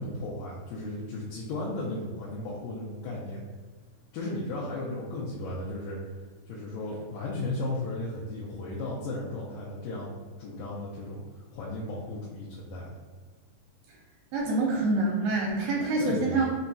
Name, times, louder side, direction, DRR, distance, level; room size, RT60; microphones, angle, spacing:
voice 1, 0.0-3.4 4.1-6.0 6.5-11.2 11.5-13.0 16.0-16.4, left 2 dB, 80° left, -5 dB, 2.1 m, -35 dB
voice 2, 14.3-16.5, right 2 dB, 85° right, -3 dB, 2.4 m, -26 dB
5.6 x 2.6 x 2.2 m, 1.5 s
omnidirectional pair, 4.2 m